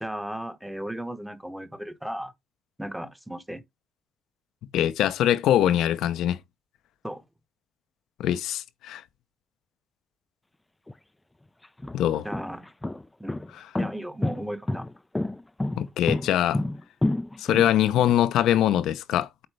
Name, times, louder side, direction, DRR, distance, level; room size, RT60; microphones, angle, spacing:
voice 1, 0.0-2.3 2.8-3.6 7.0-7.2 12.2-12.7 13.2-13.4 13.8-14.9, right 1 dB, 5° right, 0.9 m, -35 dB
voice 2, 4.7-6.4 8.2-9.0 11.9-12.3 15.8-16.6 17.4-19.3, left 11 dB, 85° left, 0.6 m, -23 dB
sound 1, 10.9-11.0 11.6-18.2, left 1 dB, 10° left, 0.3 m, -29 dB
8.1 x 4.3 x 3.3 m
cardioid pair, 90°, 0 cm